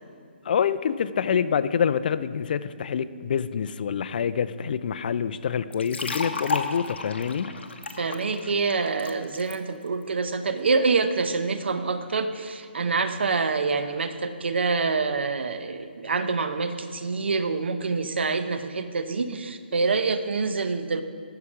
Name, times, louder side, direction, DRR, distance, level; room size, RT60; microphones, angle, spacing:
voice 1, 0.4-7.5, left 7 dB, 50° left, 13 dB, 0.4 m, -26 dB
sound 1, 5.7-9.6, left 3 dB, 80° left, 0.9 m, -33 dB
voice 2, 8.0-21.0, right 4 dB, 75° right, 9 dB, 0.8 m, -26 dB
13.5 x 5.9 x 4.9 m, 2.2 s
hypercardioid pair, 155°, 6 cm